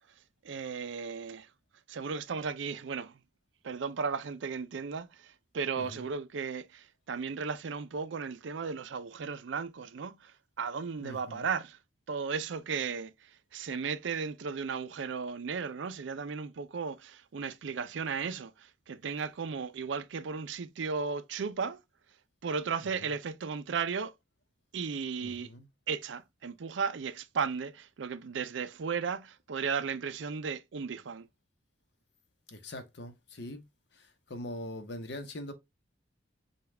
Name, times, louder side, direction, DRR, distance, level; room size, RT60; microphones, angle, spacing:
voice 1, 0.4-1.5 1.9-3.2 3.6-11.8 12.1-21.8 22.4-24.1 24.7-25.5 25.9-31.3, right 5 dB, 75° right, 0.5 m, -35 dB
voice 2, 11.0-11.5 23.0-23.1 25.2-25.7 32.5-33.6 33.9-35.5, left 1 dB, 60° left, 0.8 m, -42 dB
5.1 x 2.3 x 3.2 m
head